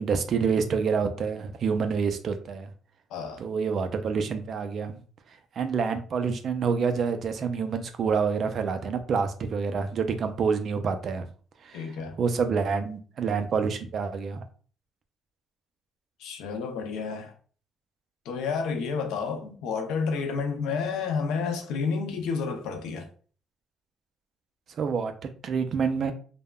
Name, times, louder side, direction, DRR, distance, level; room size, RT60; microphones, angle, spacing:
voice 1, 0.0-2.7 3.4-5.0 5.6-11.3 11.6-11.8 12.2-14.4 24.8-26.1, right 5 dB, 45° right, 0.3 m, -27 dB
voice 2, 3.1-3.4 11.7-12.2 16.2-17.3 18.3-23.1, left 5 dB, 90° left, 0.5 m, -30 dB
3.4 x 2.0 x 2.3 m
cardioid pair, 150°, 0 cm